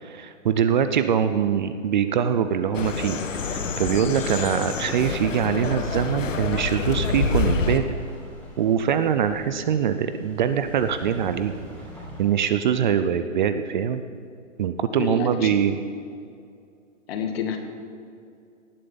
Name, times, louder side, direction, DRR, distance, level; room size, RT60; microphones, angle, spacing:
voice 1, 0.0-7.8 8.6-11.5 12.2-14.0 14.6-15.8, right 8 dB, 40° right, 10 dB, 0.5 m, -23 dB
sound 1, 2.3-13.1, left 1 dB, 5° left, 2.6 m, -45 dB
sound 2, 2.7-7.8, left 4 dB, 80° left, 1.1 m, -27 dB
voice 2, 15.0-15.5 17.1-17.6, left 5 dB, 50° left, 5 dB, 1.7 m, -28 dB
18.0 x 7.9 x 3.9 m, 2.4 s
hypercardioid pair, 125°, 38 cm